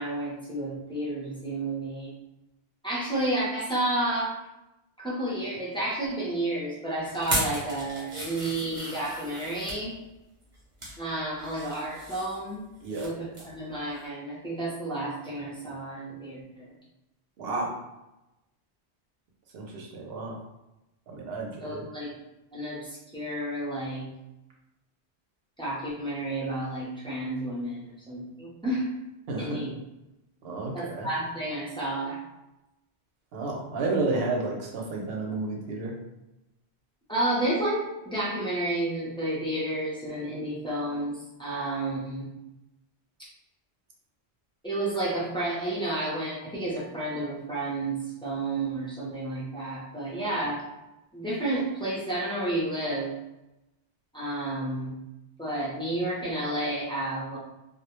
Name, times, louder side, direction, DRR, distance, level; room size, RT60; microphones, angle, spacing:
voice 1, 0.0-2.1 2.8-4.3 5.0-9.9 11.0-12.6 12.9-16.7 21.6-22.1 22.5-24.1 25.6-28.9 29.4-29.7 30.7-32.2 37.1-42.3 44.6-50.6 51.1-53.1 54.1-54.9 55.4-57.4, right 1 dB, 5° left, -7 dB, 0.4 m, -31 dB
sound 1, 7.2-9.8 10.4-11.0 11.4-13.1 13.3-13.6 14.0-14.1, right 1 dB, 40° right, 0.7 m, -35 dB
voice 2, 17.4-17.7 19.5-20.4 21.1-21.9 29.3-29.6 30.4-31.1 33.3-35.9, right 3 dB, 70° right, 0 dB, 0.8 m, -31 dB
2.2 x 2.0 x 2.9 m, 0.95 s
omnidirectional pair, 1.1 m